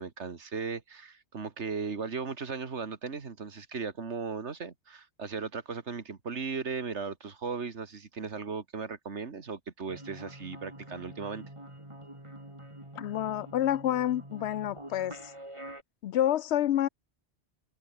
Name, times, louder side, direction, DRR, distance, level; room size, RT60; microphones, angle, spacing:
voice 1, 0.0-11.4, right 5 dB, 85° right, 2.1 m, -37 dB
sound 1, 9.9-15.8, right 1 dB, 25° right, 5.2 m, -46 dB
voice 2, 13.0-15.2 16.0-16.9, left 12 dB, 75° left, 0.9 m, -28 dB
omnidirectional pair, 1.1 m